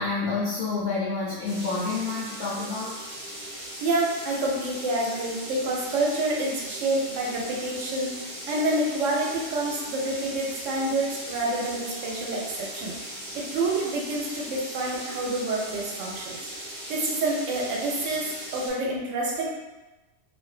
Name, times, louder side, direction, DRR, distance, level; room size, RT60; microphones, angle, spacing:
voice 1, 0.0-3.0, left 3 dB, 60° left, -6 dB, 0.7 m, -28 dB
sound 1, 1.4-18.7, right 1 dB, 30° right, 0.7 m, -38 dB
voice 2, 3.8-13.0 13.3-18.3 18.5-19.5, right 2 dB, 80° right, -3 dB, 0.9 m, -28 dB
2.5 x 2.1 x 2.3 m, 1.1 s
omnidirectional pair, 1.3 m